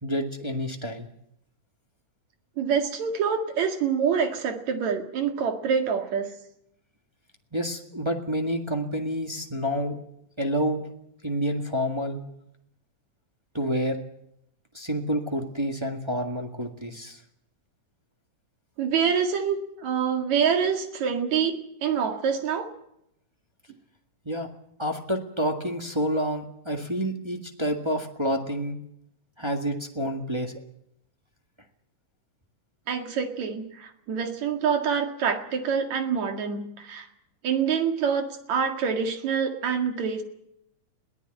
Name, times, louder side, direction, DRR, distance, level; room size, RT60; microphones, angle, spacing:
voice 1, 0.0-1.1 7.5-10.0 10.4-10.9 11.2-12.2 13.5-14.0 14.7-17.2 24.2-24.5 24.8-28.8 29.4-30.6, equal, 15° right, 2 dB, 1.2 m, -28 dB
voice 2, 2.6-6.3 18.8-22.7 32.9-37.1 37.4-40.2, right 6 dB, 70° right, 5 dB, 3.4 m, -26 dB
21.5 x 16.0 x 9.1 m, 0.78 s
omnidirectional pair, 3.3 m